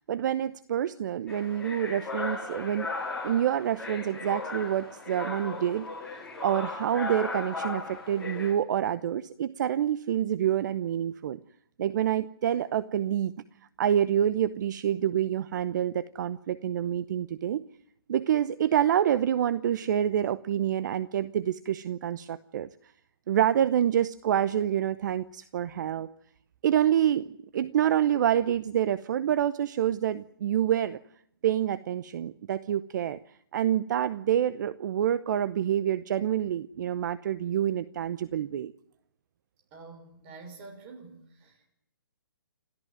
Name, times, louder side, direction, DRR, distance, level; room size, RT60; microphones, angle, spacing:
voice 1, 0.0-2.9 3.2-5.9 6.1-11.4 11.8-13.3 13.8-17.6 18.1-22.7 23.3-26.1 26.6-27.3 27.5-31.0 31.4-33.2 33.5-38.7, right 10 dB, 50° right, 15 dB, 0.8 m, -27 dB
sound 1, 1.3-8.5, left 3 dB, 5° left, 5.6 m, -36 dB
voice 2, 39.7-41.7, right 4 dB, 30° right, 5 dB, 6.2 m, -47 dB
29.0 x 14.0 x 9.2 m, 0.70 s
hypercardioid pair, 145°, 12 cm